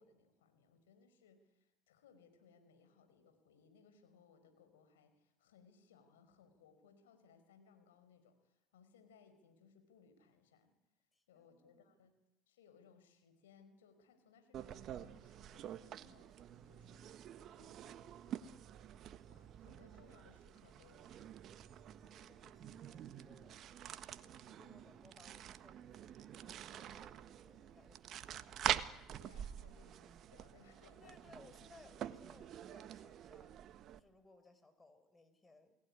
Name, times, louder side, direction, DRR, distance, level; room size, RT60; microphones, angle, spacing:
voice 1, 0.0-10.7 11.3-12.1 12.5-18.5 19.3-21.3 28.2-28.6 29.2-31.1, left 6 dB, 85° left, 8 dB, 5.0 m, -66 dB
voice 2, 11.1-12.0 22.0-23.7 24.2-28.5 31.0-35.8, left 3 dB, 20° left, 11 dB, 5.7 m, -65 dB
sound 1, 14.5-34.0, right 10 dB, 55° right, 1.5 m, -46 dB
29.0 x 19.0 x 9.9 m, 0.93 s
hypercardioid pair, 70°, 0 cm